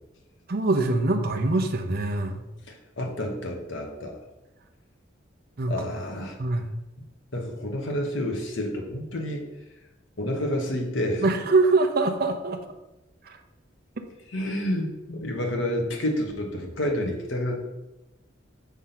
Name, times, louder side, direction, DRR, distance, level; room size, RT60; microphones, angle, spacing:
voice 1, 0.5-2.5 5.6-5.9 6.4-6.7 11.2-12.6 13.3-13.4, right 3 dB, 50° right, 6 dB, 0.6 m, -23 dB
voice 2, 2.7-4.2 5.7-6.4 7.3-9.4 10.2-11.2 14.3-17.5, left 1 dB, 75° left, 1 dB, 1.2 m, -29 dB
5.6 x 3.6 x 5.7 m, 1.0 s
head